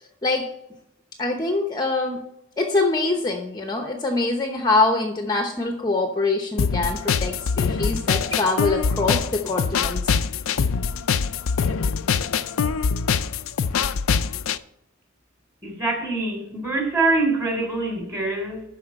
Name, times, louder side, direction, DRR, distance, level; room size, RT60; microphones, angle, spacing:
voice 1, 1.2-2.2 2.6-10.0, left 3 dB, 20° left, 4 dB, 0.9 m, -24 dB
sound 1, 6.6-14.6, left 6 dB, 80° left, 0.5 m, -24 dB
voice 2, 15.6-18.6, right 2 dB, 15° right, 1 dB, 3.4 m, -24 dB
12.0 x 4.9 x 6.3 m, 0.80 s
head